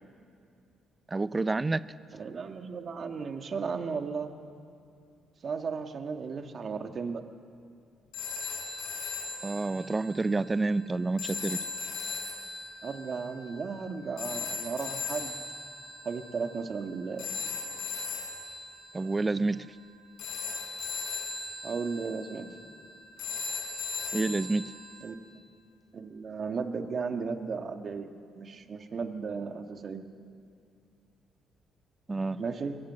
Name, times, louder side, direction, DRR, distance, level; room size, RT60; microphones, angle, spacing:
voice 1, 1.1-1.9 9.4-11.6 18.9-19.7 24.1-24.7 32.1-32.4, right 3 dB, 25° right, 16 dB, 0.6 m, -29 dB
voice 2, 2.1-4.3 5.4-7.2 12.8-15.4 16.1-17.3 21.6-22.5 25.0-25.2 25.9-28.1 28.4-30.0 32.4-32.8, right 5 dB, 50° right, 6 dB, 1.6 m, -35 dB
sound 1, 8.1-25.0, left 4 dB, 80° left, 6.5 m, -38 dB
21.5 x 17.5 x 7.5 m, 2.4 s
cardioid pair, 90°, 0 cm